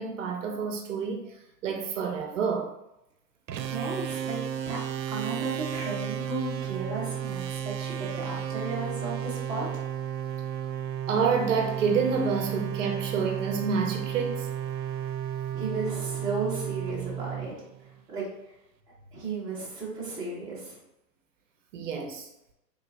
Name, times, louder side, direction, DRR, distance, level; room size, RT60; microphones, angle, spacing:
voice 1, 0.0-1.3 1.6-2.7 11.1-14.5 21.7-22.3, right 5 dB, 50° right, 0.7 m, -28 dB
sound 1, 3.5-18.0, right 9 dB, 85° right, 0.6 m, -33 dB
voice 2, 3.6-4.8 5.1-9.7 15.5-17.5 18.1-18.3 19.1-20.8, right 3 dB, 10° right, 0.6 m, -34 dB
4.5 x 3.3 x 2.5 m
hypercardioid pair, 135°, 49 cm